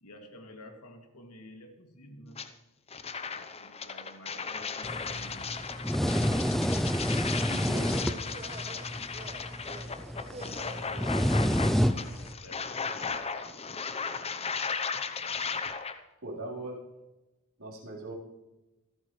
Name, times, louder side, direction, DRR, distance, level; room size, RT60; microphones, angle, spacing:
voice 1, 0.0-2.5 3.3-6.9 8.1-8.7 9.8-13.4 14.0-14.7 15.1-15.6, equal, 85° left, 3 dB, 2.4 m, -52 dB
sound 1, 2.4-2.5 2.9-15.9, left 5 dB, 25° left, 0.8 m, -36 dB
sound 2, 4.8-12.3, equal, ahead, 0.4 m, -30 dB
voice 2, 7.5-8.2 16.2-16.8 17.6-18.1, right 1 dB, 70° right, -4 dB, 4.0 m, -39 dB
sound 3, 8.2-12.0, right 3 dB, 30° right, 1.0 m, -48 dB
26.0 x 9.0 x 3.2 m, 1.0 s
head